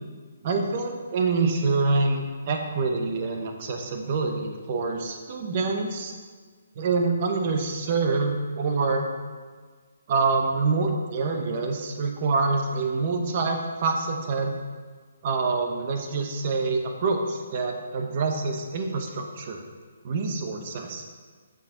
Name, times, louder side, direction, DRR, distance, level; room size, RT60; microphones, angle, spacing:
voice 1, 0.4-6.1 6.8-9.1 10.1-14.6 15.2-19.6 20.0-21.0, right 4 dB, 35° right, 4 dB, 0.9 m, -26 dB
7.1 x 6.3 x 3.9 m, 1.5 s
hypercardioid pair, 165°, 0 cm